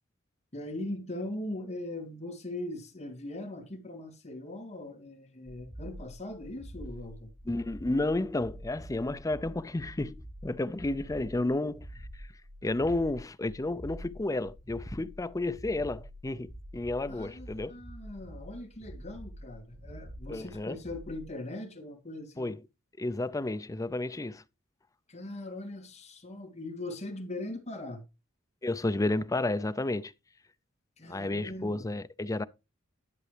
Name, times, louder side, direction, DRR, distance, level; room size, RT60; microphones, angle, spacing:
voice 1, 0.5-7.3 17.1-22.5 25.1-28.0 31.0-31.9, left 1 dB, 35° left, 2.4 m, -40 dB
sound 1, 5.5-21.3, equal, 50° right, 2.2 m, -47 dB
voice 2, 7.5-10.2 10.4-11.9 12.6-17.7 20.3-20.8 22.4-22.6 23.0-24.4 28.6-30.1 31.1-32.4, left 2 dB, 15° left, 0.5 m, -31 dB
11.0 x 7.5 x 3.3 m
head